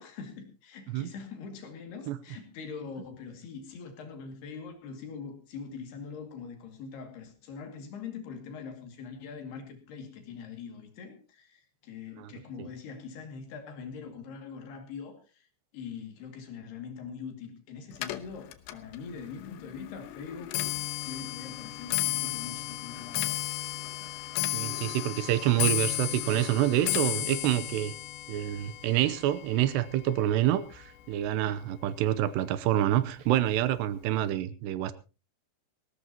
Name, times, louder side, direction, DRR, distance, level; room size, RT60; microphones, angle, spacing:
voice 1, 0.0-15.5 15.7-20.7 21.0-23.5, left 5 dB, 70° left, 5 dB, 4.3 m, -43 dB
Clock, 17.9-31.3 31.6-32.1 32.9-33.0 33.3-33.7 33.9-34.0, left 16 dB, 90° left, 3.3 m, -34 dB
voice 2, 24.5-27.9 28.3-34.9, right 13 dB, 80° right, 14 dB, 2.8 m, -27 dB
19.5 x 17.0 x 2.9 m, 0.32 s
omnidirectional pair, 5.0 m